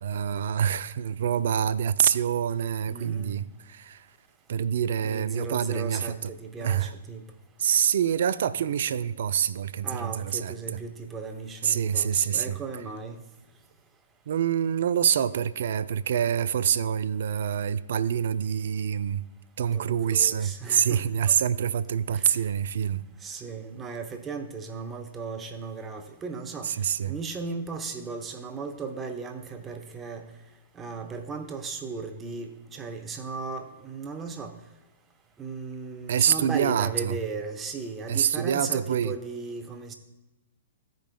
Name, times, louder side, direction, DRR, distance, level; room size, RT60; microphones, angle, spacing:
voice 1, 0.0-4.1 4.5-6.3 6.6-6.9 7.6-10.8 11.6-12.6 14.3-19.2 19.6-23.0 26.6-27.2 36.1-37.2 38.1-39.1, right 9 dB, 65° right, 15 dB, 0.3 m, -26 dB
voice 2, 2.9-3.4 5.0-7.2 9.8-13.2 19.7-21.3 22.1-22.4 23.2-26.7 27.1-30.2 30.8-34.5 35.4-39.9, right 4 dB, 20° right, 6 dB, 0.7 m, -36 dB
15.0 x 5.2 x 2.2 m, 1.0 s
hypercardioid pair, 125°, 0 cm